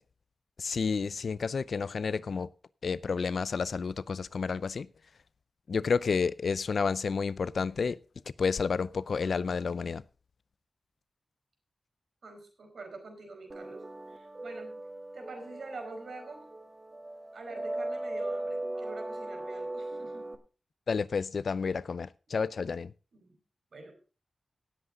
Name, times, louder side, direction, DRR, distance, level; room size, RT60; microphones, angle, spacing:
voice 1, 0.6-2.5 2.8-4.9 5.7-8.0 8.4-10.0 20.9-22.9, left 5 dB, 70° left, 0.5 m, -30 dB
voice 2, 12.2-14.8 15.1-16.5 17.3-20.4 22.3-22.4 23.1-23.4 23.7-23.9, right 3 dB, 75° right, 4.8 m, -46 dB
sound 1, 13.5-20.3, right 1 dB, 35° right, 1.4 m, -38 dB
18.0 x 8.0 x 3.8 m
wide cardioid pair, 100°, 0 cm